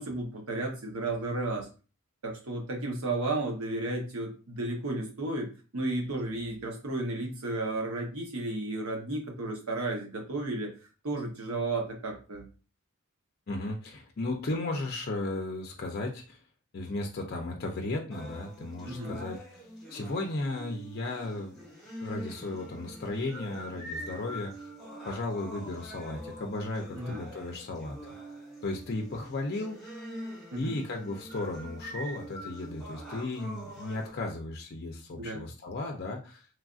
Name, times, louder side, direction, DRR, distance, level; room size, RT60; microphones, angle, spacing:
voice 1, 0.0-1.7 2.2-10.7 11.0-12.5 18.9-19.2 26.9-27.2 30.5-30.8 35.2-35.5, right 2 dB, 80° right, 1 dB, 0.9 m, -33 dB
voice 2, 13.5-16.4 16.7-19.6 19.9-21.5 22.0-24.5 25.1-28.0 28.6-29.8 30.6-36.5, left 2 dB, 45° left, 1 dB, 0.4 m, -35 dB
sound 1, 18.1-34.1, equal, ahead, 1.0 m, -44 dB
3.2 x 2.4 x 2.4 m, 0.35 s
head